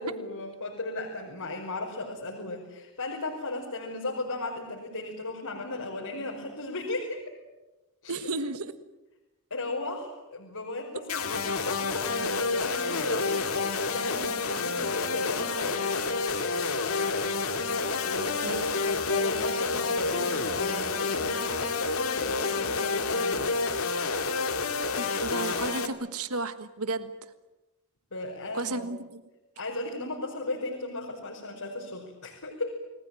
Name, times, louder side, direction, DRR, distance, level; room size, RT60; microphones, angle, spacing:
voice 1, 0.0-7.2 8.0-8.3 9.5-15.9 18.0-23.7 28.1-28.9 29.6-32.8, left 2 dB, 90° left, -2 dB, 5.2 m, -36 dB
voice 2, 8.1-8.7 18.4-18.7 25.0-27.1 28.5-29.2, right 3 dB, 80° right, 12 dB, 1.4 m, -33 dB
sound 1, 11.1-25.9, left 4 dB, 75° left, 2.5 m, -29 dB
29.5 x 19.5 x 9.1 m, 1.0 s
head